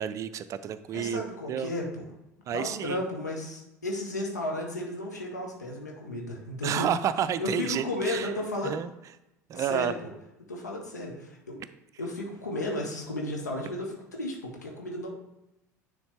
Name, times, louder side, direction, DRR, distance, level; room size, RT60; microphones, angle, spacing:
voice 1, 0.0-1.7 2.5-3.0 6.6-8.3 8.6-8.9 9.5-9.9, right 9 dB, 35° right, 13 dB, 0.4 m, -30 dB
voice 2, 0.9-2.0 2.5-6.9 7.4-8.7 9.5-10.1 10.5-11.6 12.0-15.1, left 1 dB, 85° left, 0 dB, 1.3 m, -34 dB
10.0 x 3.6 x 3.3 m, 0.91 s
figure-of-eight pair, 70°, 9 cm